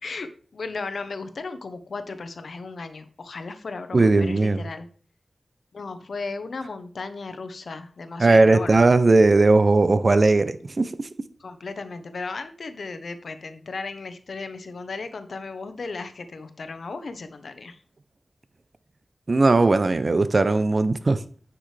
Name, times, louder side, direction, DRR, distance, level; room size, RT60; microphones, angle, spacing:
voice 1, 0.0-4.9 5.7-8.8 11.4-17.8, left 3 dB, 80° left, 0.8 m, -35 dB
voice 2, 3.9-4.6 8.2-11.1 19.3-21.2, right 3 dB, 50° right, 0.6 m, -18 dB
9.3 x 6.0 x 3.3 m
wide cardioid pair, 70°, 0 cm